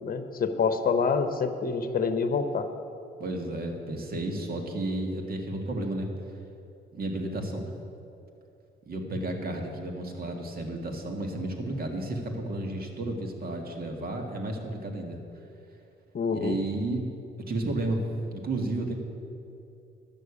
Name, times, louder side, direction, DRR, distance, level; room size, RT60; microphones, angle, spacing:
voice 1, 0.0-2.7 16.1-16.6, left 5 dB, 45° left, 9 dB, 1.0 m, -27 dB
voice 2, 3.2-6.1 6.9-7.7 8.9-15.2 16.3-17.1 17.5-18.1 18.3-19.0, right 2 dB, 50° right, 2 dB, 1.9 m, -32 dB
11.5 x 6.5 x 8.5 m, 2.7 s
cardioid pair, 90°, 20 cm